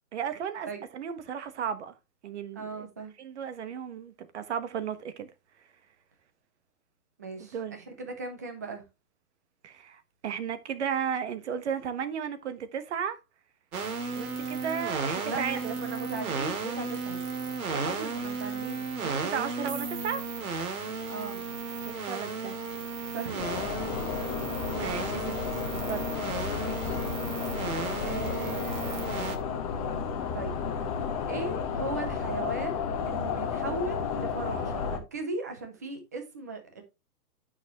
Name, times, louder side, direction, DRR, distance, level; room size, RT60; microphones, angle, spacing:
voice 1, 0.1-0.7 0.9-1.9 2.2-2.9 3.2-5.3 7.5-7.7 9.6-13.2 14.2-15.7 17.7-17.9 19.0-20.2 21.8-22.6 24.8-25.4 25.7-26.1, right 7 dB, 45° right, 1.2 m, -34 dB
voice 2, 2.5-3.1 7.2-8.8 15.3-17.2 17.7-18.9 21.1-21.4 23.1-24.1 26.6-27.0 28.0-29.3 30.3-30.6 31.3-36.8, right 3 dB, 10° right, 0.5 m, -38 dB
sound 1, 13.7-29.4, right 4 dB, 65° right, 2.4 m, -34 dB
sound 2, 23.4-35.0, left 6 dB, 25° left, 0.9 m, -32 dB
9.7 x 6.2 x 3.0 m
hypercardioid pair, 160°, 47 cm